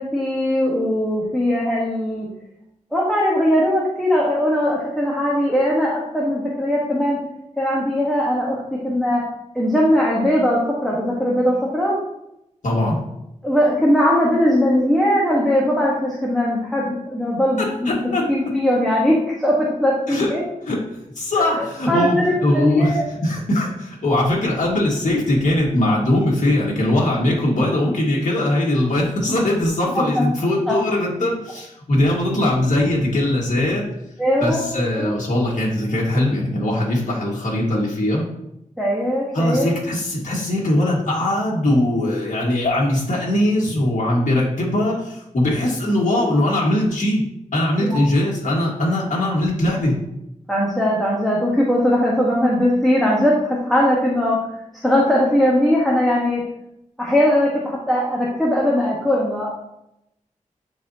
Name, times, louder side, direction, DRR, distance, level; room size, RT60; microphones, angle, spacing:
voice 1, 0.0-2.3 2.9-7.2 7.6-9.2 9.5-12.0 13.4-17.9 18.3-19.2 19.4-20.4 21.4-23.0 29.9-30.2 30.7-30.8 34.2-34.6 35.0-35.1 38.8-39.7 47.8-48.0 50.5-54.4 54.8-56.4 57.0-59.5, equal, ahead, -5 dB, 1.3 m, -19 dB
voice 2, 12.6-13.0 17.6-18.3 20.1-20.3 20.7-20.8 21.2-33.8 34.4-38.3 39.3-47.2 47.5-50.0, left 1 dB, 65° left, -4 dB, 1.8 m, -20 dB
10.0 x 4.3 x 2.8 m, 0.82 s
wide cardioid pair, 110°, 14 cm